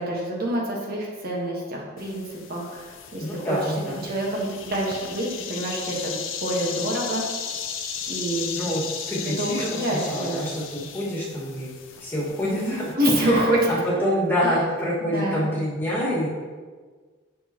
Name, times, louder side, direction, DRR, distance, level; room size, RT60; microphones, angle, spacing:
voice 1, 0.0-3.6 4.0-7.2 8.1-8.5 9.4-10.4 12.4-13.7 15.0-15.4, right 1 dB, 45° right, -2 dB, 1.5 m, -26 dB
sound 1, 2.0-12.9, left 7 dB, 65° left, 0.7 m, -36 dB
voice 2, 3.2-4.0 8.5-11.7 12.0-12.8 13.2-13.4 13.7-16.3, equal, 10° left, -8 dB, 2.0 m, -27 dB
6.9 x 6.2 x 3.0 m, 1.5 s
head